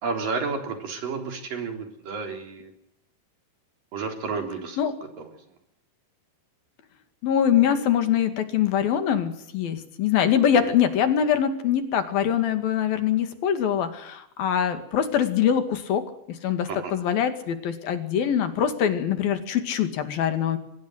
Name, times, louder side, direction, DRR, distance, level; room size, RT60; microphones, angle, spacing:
voice 1, 0.0-2.7 3.9-4.8 5.2-5.3 16.7-16.9, right 4 dB, 60° right, 5 dB, 5.4 m, -31 dB
voice 2, 7.2-16.0 16.3-20.6, left 9 dB, 70° left, 9 dB, 4.0 m, -23 dB
24.5 x 20.5 x 7.9 m, 0.77 s
omnidirectional pair, 4.4 m